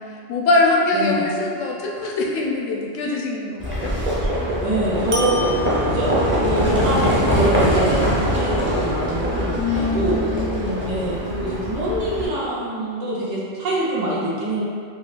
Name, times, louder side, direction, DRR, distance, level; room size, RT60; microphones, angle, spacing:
voice 1, 0.3-3.9 9.6-10.9, left 2 dB, 80° left, -1 dB, 0.9 m, -22 dB
voice 2, 0.9-1.4 4.6-5.6 5.9-6.1 6.4-10.2 10.9-14.6, right 1 dB, 80° right, -7 dB, 1.2 m, -25 dB
sound 1, 1.6-2.2 5.1-6.5, left 1 dB, 65° right, 0.9 m, -32 dB
Livestock farm animals working animals, 3.6-12.3, equal, 15° right, 0.4 m, -22 dB
5.1 x 2.0 x 2.4 m, 2.2 s
omnidirectional pair, 1.3 m